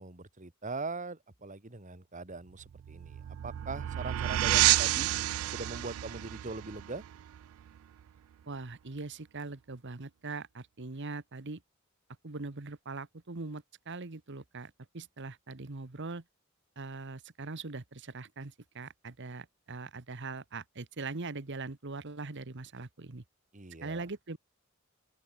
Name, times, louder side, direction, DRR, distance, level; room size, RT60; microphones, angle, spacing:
voice 1, 0.0-5.1 5.5-7.0 23.5-24.1, right 3 dB, 35° right, 1.9 m, -41 dB
sound 1, 2.6-8.0, right 15 dB, 80° right, 0.3 m, -30 dB
voice 2, 8.5-11.6 12.2-16.2 16.8-23.2 23.8-24.4, right 3 dB, 60° right, 1.2 m, -41 dB
open air
head